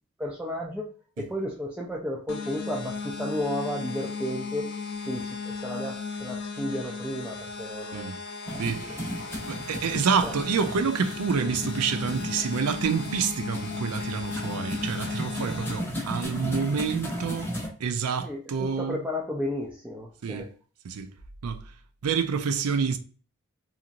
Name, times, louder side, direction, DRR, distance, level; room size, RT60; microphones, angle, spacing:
voice 1, 0.2-0.9 1.2-4.7 5.1-8.1 8.8-8.9 10.2-10.3 18.2-20.5, left 1 dB, 5° right, 0.4 m, -33 dB
sound 1, 2.3-15.8, left 5 dB, 85° left, 0.7 m, -36 dB
sound 2, 8.5-17.7, equal, 10° left, 0.8 m, -36 dB
voice 2, 8.6-9.0 9.5-17.5 17.8-19.0 20.2-20.5 20.8-21.1 21.4-21.6 22.0-23.0, right 6 dB, 90° right, 0.4 m, -28 dB
2.9 x 2.5 x 2.5 m
head